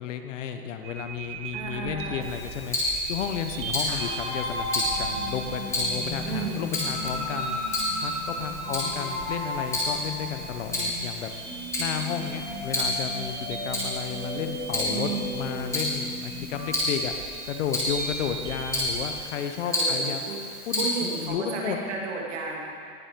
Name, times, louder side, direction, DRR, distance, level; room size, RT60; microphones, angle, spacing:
voice 1, 0.0-7.6 8.0-11.3 11.8-17.1 17.4-20.2 20.7-21.8, left 8 dB, 55° left, 7 dB, 1.0 m, -33 dB
sound 1, 0.8-19.2, right 4 dB, 20° right, 1.0 m, -41 dB
voice 2, 1.5-2.2 3.9-4.0 6.3-6.7 8.7-9.1 14.9-15.7 19.6-20.4 20.8-22.6, right 5 dB, 50° right, -1 dB, 2.5 m, -34 dB
Tick-tock, 2.2-21.3, left 1 dB, 5° left, 2.3 m, -32 dB
sound 2, 4.0-16.7, left 1 dB, 25° left, 3.8 m, -35 dB
19.0 x 7.3 x 5.2 m, 2.5 s
supercardioid pair, 160°, 45 cm